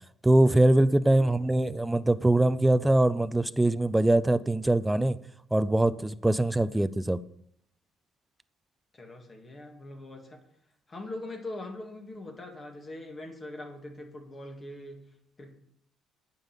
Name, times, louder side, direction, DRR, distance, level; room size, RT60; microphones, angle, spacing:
voice 1, 0.2-5.2 5.5-7.2, right 1 dB, 10° right, 0.4 m, -23 dB
voice 2, 8.9-10.4 10.9-15.5, left 2 dB, 30° left, 2.0 m, -42 dB
9.0 x 5.4 x 7.4 m
supercardioid pair, 85°, 0 cm